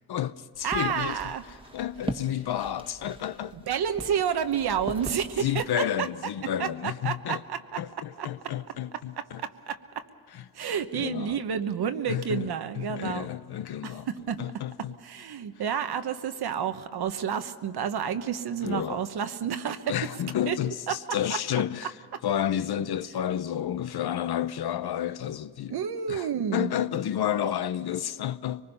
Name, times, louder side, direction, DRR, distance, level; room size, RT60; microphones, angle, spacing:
voice 1, 0.1-1.3 1.7-3.6 5.4-7.4 7.8-9.4 10.3-10.4 10.9-11.4 12.1-12.5 12.8-14.1 14.4-14.9 18.6-19.0 19.9-21.9 22.2-25.8 26.1-28.6, left 10 dB, 80° left, 0.8 m, -31 dB
sound 1, 0.5-5.7, right 1 dB, 15° right, 1.4 m, -40 dB
voice 2, 0.6-1.4 3.5-5.6 6.0-6.1 6.6-7.8 8.2-8.3 9.2-9.8 10.5-13.3 13.8-14.4 15.0-19.9 20.5-20.6 20.9-21.0 22.1-22.2 25.7-26.7, right 8 dB, 80° right, 1.2 m, -30 dB
24.5 x 20.0 x 5.5 m
cardioid pair, 85°, 38 cm